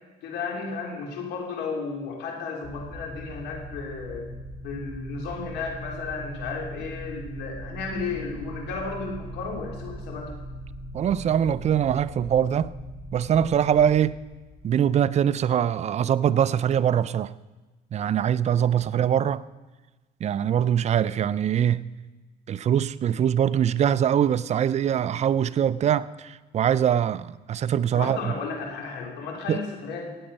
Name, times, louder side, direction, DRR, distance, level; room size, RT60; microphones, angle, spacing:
voice 1, 0.2-4.2 4.6-10.3 27.9-30.1, left 4 dB, 85° left, 3.2 m, -33 dB
sound 1, 2.6-15.6, equal, 45° left, 5.3 m, -40 dB
voice 2, 10.9-12.7 13.1-14.2 14.6-17.3 17.9-19.4 20.2-21.8 22.5-28.3 29.5-29.6, right 9 dB, 40° right, 0.5 m, -23 dB
16.5 x 8.8 x 5.4 m
cardioid pair, 110°, 17 cm